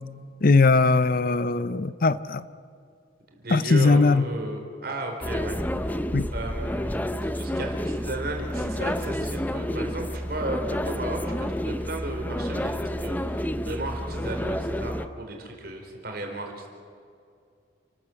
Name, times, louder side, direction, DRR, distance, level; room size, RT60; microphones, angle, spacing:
voice 1, 0.4-2.4 3.5-4.2 6.1-6.3, left 3 dB, 50° left, 15 dB, 0.6 m, -20 dB
voice 2, 3.4-6.0 6.3-16.7, right 1 dB, 55° right, 2 dB, 4.3 m, -34 dB
sound 1, 5.2-15.1, equal, 10° left, 0.7 m, -30 dB
29.5 x 13.5 x 7.9 m, 2.4 s
head